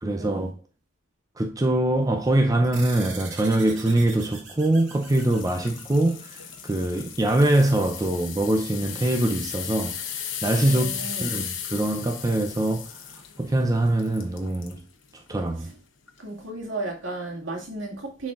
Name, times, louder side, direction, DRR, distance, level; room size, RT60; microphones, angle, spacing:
voice 1, 0.0-0.5 1.4-6.2 6.6-9.9 10.4-12.9 13.4-14.8 15.3-15.7, right 1 dB, 20° right, 0.5 m, -23 dB
sound 1, 2.7-7.6, right 4 dB, 65° right, 2.2 m, -43 dB
sound 2, 4.9-14.8 15.3-15.5 16.1-16.2, left 8 dB, 75° left, 0.9 m, -36 dB
voice 2, 10.6-11.3 16.2-18.3, right 2 dB, 80° right, 2.1 m, -34 dB
10.0 x 4.1 x 2.4 m
head